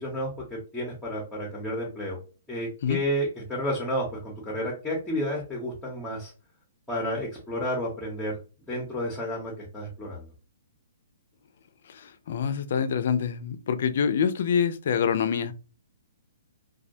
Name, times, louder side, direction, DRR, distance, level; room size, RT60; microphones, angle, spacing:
voice 1, 0.0-2.2 2.5-6.3 6.9-8.4 8.7-10.2, equal, 5° left, 0.7 m, -31 dB
voice 2, 11.9-15.5, left 7 dB, 60° left, 0.3 m, -26 dB
2.2 x 2.1 x 2.6 m
hypercardioid pair, 140°, 0 cm